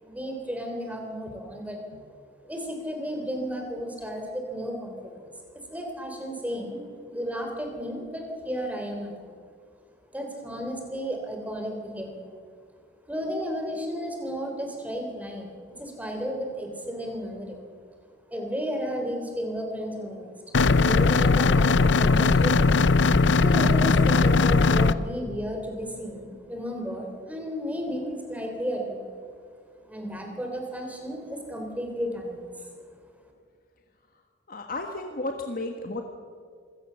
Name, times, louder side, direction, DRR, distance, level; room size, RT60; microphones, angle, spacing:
voice 1, 0.0-1.8 2.4-5.1 5.7-9.4 10.1-12.3 13.1-17.6 18.3-20.3 20.6-22.8 23.4-29.0 29.9-32.6, equal, 10° right, 2 dB, 3.5 m, -33 dB
sound 1, 20.5-24.9, left 3 dB, 75° left, 0.6 m, -19 dB
voice 2, 34.5-36.0, left 2 dB, 50° left, 4 dB, 1.5 m, -33 dB
25.5 x 17.0 x 6.9 m, 2.1 s
head